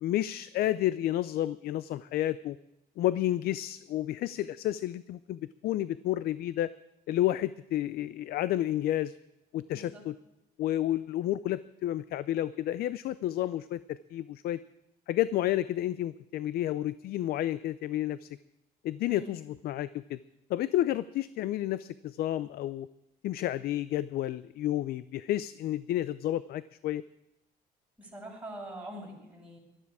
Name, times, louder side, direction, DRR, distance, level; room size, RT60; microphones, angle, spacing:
voice 1, 0.0-2.6 3.0-6.7 7.1-9.1 9.5-10.2 10.6-14.6 15.1-18.3 18.8-20.2 20.5-22.9 23.2-27.0, left 13 dB, 65° left, 16 dB, 0.5 m, -31 dB
voice 2, 9.7-10.1 19.1-19.3 28.0-29.6, right 1 dB, 10° right, -3 dB, 6.2 m, -44 dB
17.5 x 13.0 x 4.9 m, 0.92 s
cardioid pair, 110°, 17 cm